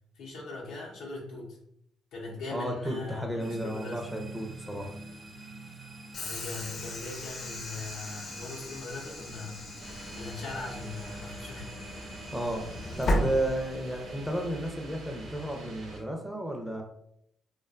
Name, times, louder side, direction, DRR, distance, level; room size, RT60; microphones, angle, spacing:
voice 1, 0.2-1.6 2.1-4.0 6.1-9.7 10.1-11.7, left 3 dB, 90° left, -3 dB, 0.6 m, -40 dB
voice 2, 2.5-5.0 12.3-16.8, right 1 dB, 5° right, 2 dB, 0.5 m, -33 dB
sound 1, 3.4-16.0, right 2 dB, 35° right, 0.9 m, -47 dB
Train / Sliding door, 6.1-14.1, left 1 dB, 45° left, 0.5 m, -36 dB
sound 2, 9.8-16.0, right 2 dB, 70° right, 0.6 m, -46 dB
2.5 x 2.2 x 2.4 m, 0.72 s
cardioid pair, 90°, 0 cm